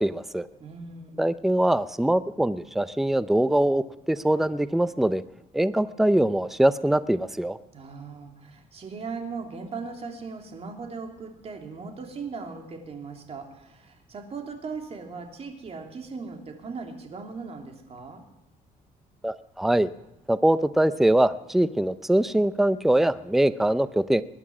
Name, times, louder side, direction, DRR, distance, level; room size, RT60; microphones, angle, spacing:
voice 1, 0.0-0.5 1.2-5.2 5.5-7.6 19.2-19.9 20.3-24.2, right 1 dB, ahead, 14 dB, 0.5 m, -23 dB
voice 2, 0.6-1.3 7.7-18.2, right 4 dB, 45° right, 3 dB, 3.0 m, -38 dB
20.5 x 11.0 x 6.1 m, 0.94 s
cardioid pair, 115°, 15 cm